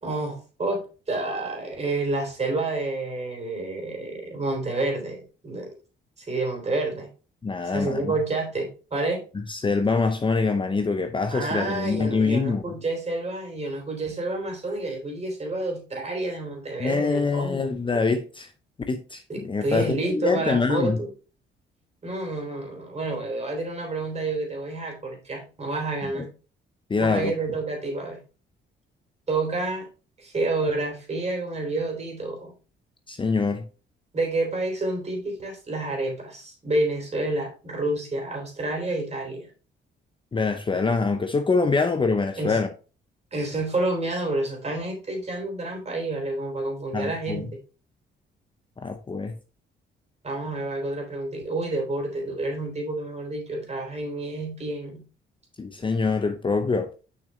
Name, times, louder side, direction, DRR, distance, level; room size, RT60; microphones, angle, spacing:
voice 1, 0.0-0.8 1.1-5.7 6.2-7.1 7.6-9.2 11.3-17.7 19.3-21.1 22.0-26.3 27.0-28.2 29.3-29.9 30.2-32.5 34.1-39.5 42.4-42.6 43.3-47.5 50.2-55.0, right 2 dB, 35° right, 3.5 m, -29 dB
voice 2, 7.4-8.1 9.3-12.6 16.8-18.5 18.9-21.0 26.2-26.3 26.9-27.3 33.1-33.6 40.3-42.7 46.9-47.4 48.8-49.4 55.6-56.9, left 4 dB, 25° left, 0.7 m, -25 dB
6.6 x 5.9 x 3.2 m
cardioid pair, 90°, 20 cm